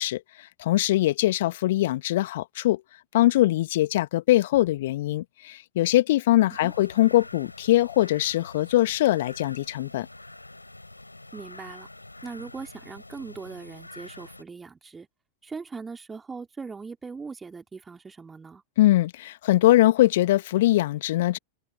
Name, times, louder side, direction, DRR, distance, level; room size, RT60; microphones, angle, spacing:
voice 1, 0.0-2.8 3.1-10.1 18.8-21.4, left 15 dB, 55° left, 1.8 m, -22 dB
sound 1, 6.5-14.4, left 2 dB, 85° left, 6.4 m, -46 dB
voice 2, 11.3-11.9 12.2-15.1 15.4-18.6, right 4 dB, 15° right, 4.0 m, -40 dB
figure-of-eight pair, 90°, 0 cm